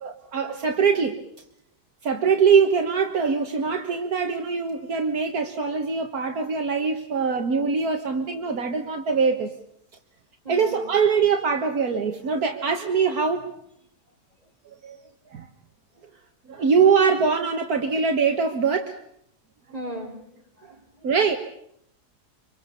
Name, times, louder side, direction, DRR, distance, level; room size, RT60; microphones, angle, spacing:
voice 1, 0.0-1.2 2.0-9.5 10.5-13.5 14.8-15.0 15.3-15.5 16.5-19.0 21.0-21.4, right 5 dB, 70° right, 4 dB, 1.9 m, -22 dB
voice 2, 10.4-10.8 15.9-16.1 19.7-21.1, equal, 25° right, 1 dB, 5.0 m, -38 dB
26.5 x 24.0 x 6.9 m, 0.73 s
omnidirectional pair, 1.7 m